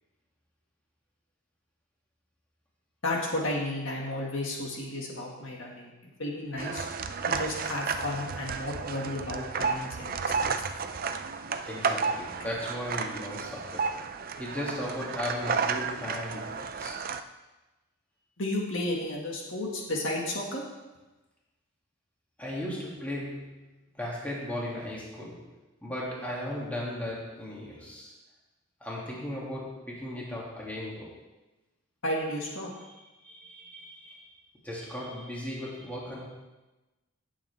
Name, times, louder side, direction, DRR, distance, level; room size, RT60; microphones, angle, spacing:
voice 1, 3.0-5.9 6.2-6.9 7.2-10.5 18.4-20.6 32.0-32.7, left 1 dB, 60° left, -1 dB, 2.0 m, -33 dB
sound 1, 6.6-17.2, right 5 dB, 45° right, 0.5 m, -32 dB
voice 2, 11.6-14.0 14.4-17.0 22.4-23.7 24.0-25.5 25.8-28.1 28.8-31.2 32.8-32.9 33.2-34.3 34.6-36.3, left 1 dB, 5° left, -5 dB, 2.5 m, -36 dB
18.0 x 7.5 x 3.5 m, 1.1 s
head